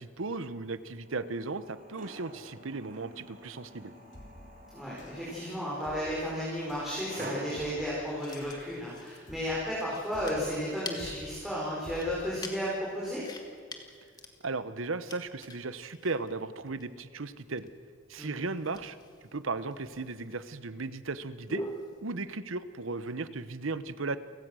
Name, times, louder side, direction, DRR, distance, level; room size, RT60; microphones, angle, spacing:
voice 1, 0.0-3.9 14.4-17.7 18.1-19.0 19.3-21.6 22.0-24.2, right 3 dB, 85° right, 14 dB, 1.0 m, -36 dB
sound 1, 1.0-7.8, right 1 dB, 40° right, 3.4 m, -48 dB
sound 2, 4.1-4.6 5.0-5.4 5.8-6.3 6.7-7.0 7.6-8.0 8.4-8.8 9.3-9.7 10.1-10.5 11.0-11.4 11.8-12.3, equal, 65° left, 3.8 m, -50 dB
voice 2, 4.7-13.2 18.2-18.4, equal, ahead, -7 dB, 4.5 m, -33 dB
sound 3, 5.0-22.0, left 1 dB, 20° left, 1.7 m, -47 dB
29.0 x 17.0 x 6.3 m, 2.1 s
head